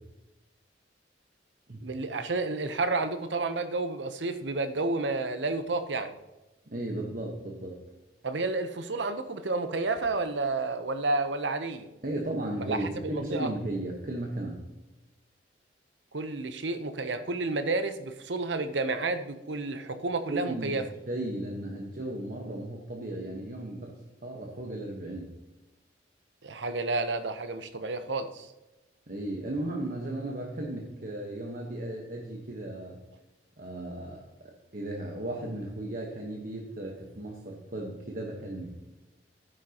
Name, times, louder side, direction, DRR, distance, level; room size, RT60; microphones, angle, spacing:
voice 1, 1.8-6.1 8.2-11.9 12.6-13.5 16.1-20.8 26.4-28.5, right 3 dB, 80° right, 10 dB, 0.9 m, -30 dB
voice 2, 6.7-7.8 12.0-14.6 20.3-25.3 29.1-33.0 33.6-34.2 34.7-38.8, right 1 dB, 50° right, 0 dB, 1.3 m, -35 dB
12.0 x 10.0 x 2.9 m, 1.1 s
head